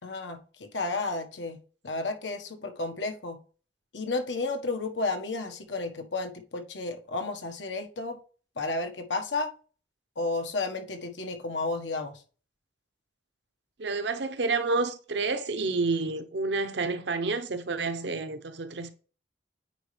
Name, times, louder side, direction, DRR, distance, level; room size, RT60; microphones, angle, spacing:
voice 1, 0.0-3.4 3.9-8.2 8.6-9.5 10.2-12.2, left 3 dB, 85° left, 1.4 m, -32 dB
voice 2, 13.8-18.9, right 3 dB, 70° right, 0.8 m, -29 dB
9.2 x 4.4 x 3.3 m
head